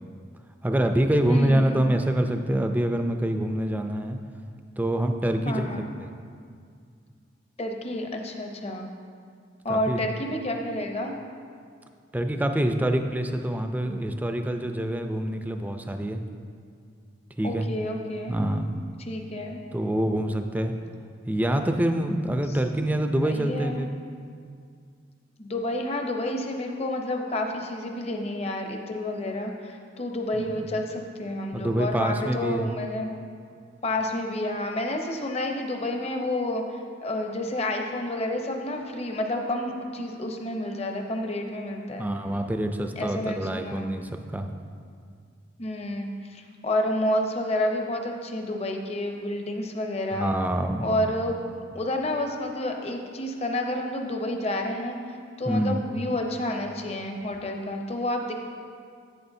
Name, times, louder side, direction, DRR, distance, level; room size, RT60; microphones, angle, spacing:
voice 1, 0.6-4.2 4.8-5.7 6.0-6.1 9.7-10.1 12.1-16.2 17.4-17.7 18.3-18.7 19.7-20.7 21.3-23.9 30.4-30.7 31.5-32.8 42.0-44.5 50.1-50.8 55.5-55.8, right 1 dB, 10° right, 6 dB, 0.4 m, -26 dB
voice 2, 1.3-1.8 5.4-5.9 7.6-8.9 9.6-11.1 17.4-18.4 19.1-19.6 22.5-22.6 23.2-23.9 25.4-33.1 33.8-42.1 43.0-43.9 45.6-50.3 50.8-51.3 51.7-58.3, left 1 dB, 35° left, 3 dB, 0.7 m, -30 dB
11.0 x 8.5 x 2.7 m, 2.2 s
head